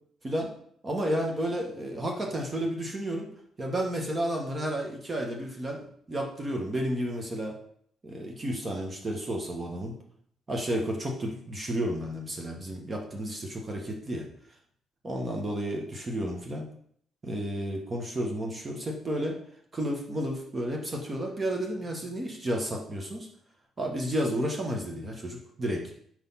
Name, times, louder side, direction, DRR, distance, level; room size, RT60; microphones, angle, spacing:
voice 1, 0.8-3.3 3.6-7.5 8.0-10.0 10.5-14.3 15.0-16.7 17.2-19.4 19.7-23.3 23.8-25.8, right 1 dB, 30° right, 1 dB, 1.1 m, -32 dB
4.5 x 4.0 x 5.5 m, 0.64 s
cardioid pair, 90°, 0 cm